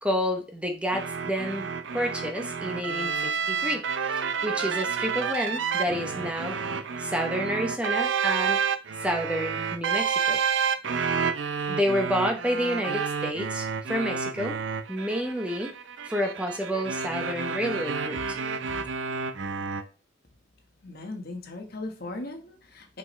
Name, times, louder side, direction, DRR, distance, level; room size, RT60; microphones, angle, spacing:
voice 1, 0.0-1.7 1.9-6.6 7.0-8.6 9.0-10.4 11.7-14.6 14.9-15.7 16.0-18.4, equal, 5° right, 3 dB, 0.8 m, -29 dB
sound 1, 0.9-19.8, right 6 dB, 75° right, 0.6 m, -30 dB
voice 2, 20.8-23.0, left 2 dB, 55° left, 4 dB, 1.3 m, -38 dB
5.9 x 5.8 x 3.2 m, 0.35 s
head